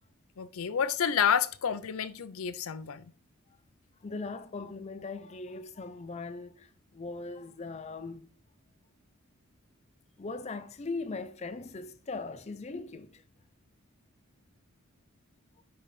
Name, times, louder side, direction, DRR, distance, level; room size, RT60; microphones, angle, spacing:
voice 1, 0.4-3.1, left 8 dB, 80° left, 0.5 m, -29 dB
voice 2, 4.0-8.3 10.2-13.2 15.6-15.7, left 3 dB, 30° left, 0.5 m, -39 dB
10.0 x 3.9 x 3.2 m
head